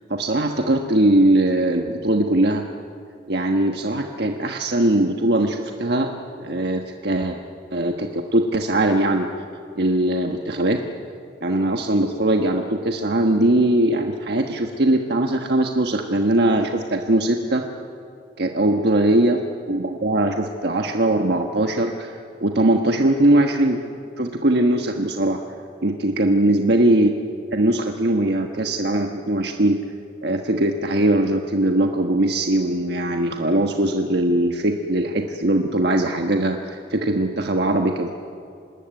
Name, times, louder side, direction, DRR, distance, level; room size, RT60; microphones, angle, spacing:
voice 1, 0.1-2.7 3.3-6.1 6.4-7.4 7.7-9.3 9.8-10.8 11.4-17.6 18.4-19.4 19.7-22.1 22.4-23.8 24.2-25.4 25.8-27.1 27.5-29.8 30.2-38.1, right 1 dB, 65° right, 3 dB, 1.3 m, -20 dB
26.0 x 20.0 x 9.2 m, 2.4 s
head